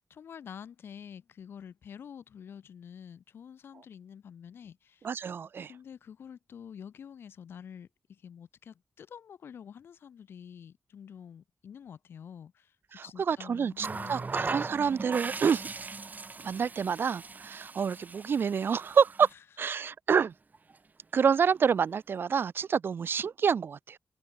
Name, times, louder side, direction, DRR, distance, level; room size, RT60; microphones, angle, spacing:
voice 1, 0.0-5.1 5.7-12.8 13.0-14.2 19.3-19.4, left 8 dB, 80° left, 5.4 m, -48 dB
voice 2, 5.0-5.7 12.9-15.7 16.4-19.3 19.6-20.3 21.1-24.0, right 6 dB, 70° right, 1.3 m, -28 dB
Water tap faucet, 13.8-19.3 20.5-20.7, right 4 dB, 45° right, 2.3 m, -39 dB
supercardioid pair, 45°, 4 cm